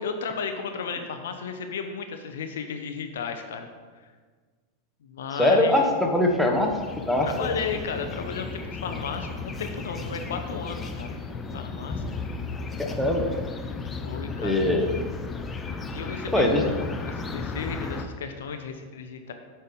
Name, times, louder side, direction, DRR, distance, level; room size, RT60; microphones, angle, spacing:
voice 1, 0.0-3.7 5.0-5.9 7.2-11.2 11.5-12.0 14.0-14.6 15.9-19.3, left 5 dB, 60° left, 6 dB, 0.6 m, -34 dB
voice 2, 5.3-6.8 7.1-7.5 12.8-13.3 14.4-14.9 16.3-16.6, left 1 dB, ahead, 0 dB, 1.1 m, -22 dB
sound 1, 5.4-18.0, left 4 dB, 20° left, 0.7 m, -35 dB
7.7 x 5.6 x 5.1 m, 1.5 s
figure-of-eight pair, 90°, 0 cm